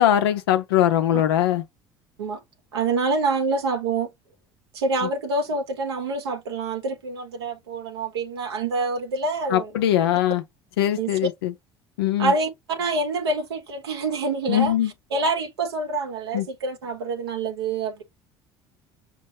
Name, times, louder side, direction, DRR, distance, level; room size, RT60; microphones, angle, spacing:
voice 1, 0.0-1.6 5.0-5.1 9.5-10.4 10.8-11.5 12.0-12.3 14.5-14.9 16.3-16.5, left 12 dB, 75° left, 0.8 m, -21 dB
voice 2, 2.7-4.1 4.7-9.7 11.0-11.1 12.2-14.7 15.1-18.0, right 3 dB, 80° right, 1.1 m, -26 dB
6.3 x 2.7 x 2.8 m
figure-of-eight pair, 60°, 13 cm